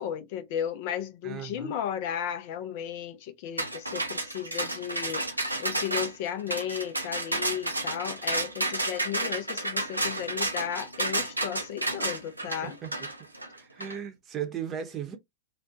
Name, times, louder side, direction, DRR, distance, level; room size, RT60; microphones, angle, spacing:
voice 1, 0.0-12.8, left 9 dB, 50° left, 0.5 m, -34 dB
voice 2, 1.2-1.7 12.6-12.9 13.6-15.2, right 8 dB, 30° right, 0.8 m, -36 dB
sound 1, 3.6-13.9, right 2 dB, 85° right, 0.5 m, -31 dB
2.4 x 2.2 x 2.7 m
figure-of-eight pair, 90°, 0 cm